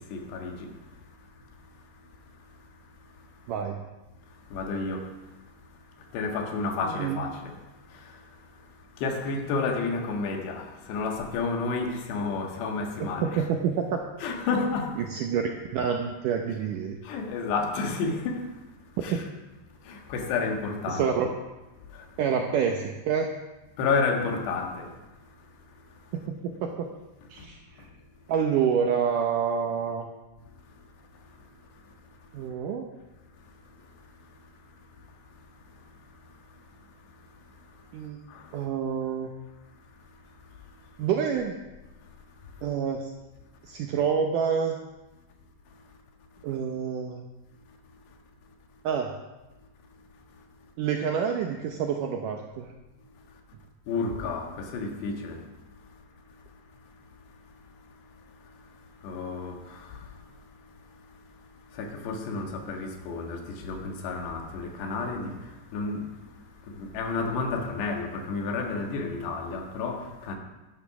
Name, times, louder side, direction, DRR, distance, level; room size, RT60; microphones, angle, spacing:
voice 1, 0.1-0.6 4.5-5.0 6.1-7.4 9.0-13.4 14.2-14.9 17.1-18.4 19.0-19.2 19.9-21.1 23.8-24.9 53.9-55.4 59.0-59.6 61.8-65.3 65.7-66.0 66.8-70.4, left 4 dB, 80° left, 3.7 m, -30 dB
voice 2, 3.5-3.8 6.8-7.2 13.0-14.0 15.0-15.4 15.7-17.0 19.1-19.2 20.9-21.3 22.2-23.3 26.1-26.9 27.3-27.6 28.3-30.0 32.3-32.9 37.9-38.2 38.5-39.3 41.0-41.6 42.6-43.1 43.6-44.8 46.4-47.2 48.8-49.1 50.8-52.7, right 7 dB, 80° right, 1.9 m, -27 dB
12.0 x 10.5 x 6.0 m
omnidirectional pair, 4.8 m